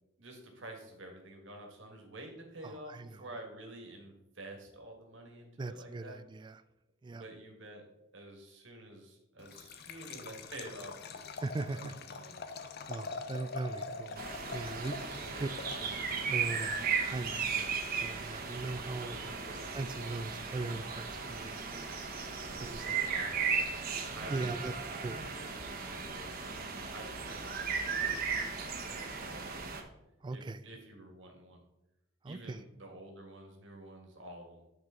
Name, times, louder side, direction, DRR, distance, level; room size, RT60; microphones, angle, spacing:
voice 1, 0.2-6.2 7.1-7.9 8.1-11.3 11.7-12.4 15.2-15.5 19.0-19.7 22.4-23.8 24.0-24.8 25.4-25.5 25.9-29.8 30.3-31.6 32.3-34.6, right 1 dB, 65° right, 2 dB, 1.7 m, -50 dB
voice 2, 2.6-3.3 5.6-6.6 7.0-7.2 11.4-11.9 12.9-15.5 15.8-19.2 19.7-21.6 22.6-23.0 24.3-25.2 30.2-30.6 32.2-32.6, right 3 dB, 25° right, 13 dB, 0.3 m, -40 dB
Liquid, 9.4-16.2, left 4 dB, 50° left, 0.6 m, -44 dB
sound 1, 14.2-29.8, right 5 dB, 50° right, 1.0 m, -36 dB
9.4 x 4.6 x 3.8 m, 0.90 s
head